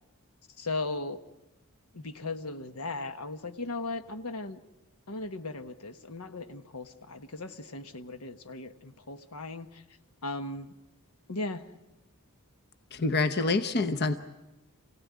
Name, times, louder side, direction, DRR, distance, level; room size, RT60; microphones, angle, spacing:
voice 1, 0.6-1.2 1.9-4.6 5.1-9.8 10.2-10.7 11.3-11.7, left 2 dB, 80° left, 9 dB, 1.2 m, -37 dB
voice 2, 12.9-14.1, left 3 dB, 50° left, 10 dB, 0.9 m, -26 dB
27.0 x 17.0 x 9.5 m, 1.0 s
head